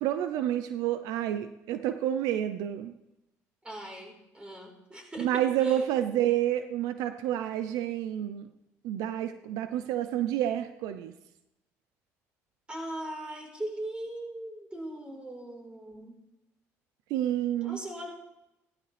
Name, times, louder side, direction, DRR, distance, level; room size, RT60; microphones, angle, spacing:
voice 1, 0.0-2.9 5.2-8.5 8.8-11.1 17.1-17.8, right 11 dB, 80° right, 10 dB, 0.7 m, -29 dB
voice 2, 3.6-5.9 12.7-16.2 17.6-18.1, right 1 dB, 15° right, 1 dB, 4.5 m, -40 dB
16.0 x 13.5 x 3.4 m, 0.92 s
supercardioid pair, 80°, 6 cm